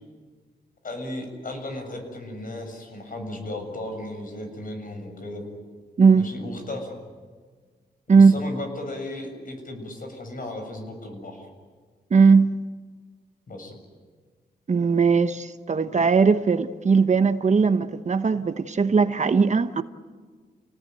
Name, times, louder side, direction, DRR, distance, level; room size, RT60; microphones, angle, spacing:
voice 1, 0.8-5.4 6.1-6.9 8.1-11.5 13.5-13.8, left 1 dB, 55° left, 7.4 m, -35 dB
voice 2, 6.0-6.3 8.1-8.3 12.1-12.6 14.7-19.8, right 5 dB, 45° right, 1.1 m, -19 dB
29.5 x 18.5 x 9.2 m
wide cardioid pair, 95°, 17 cm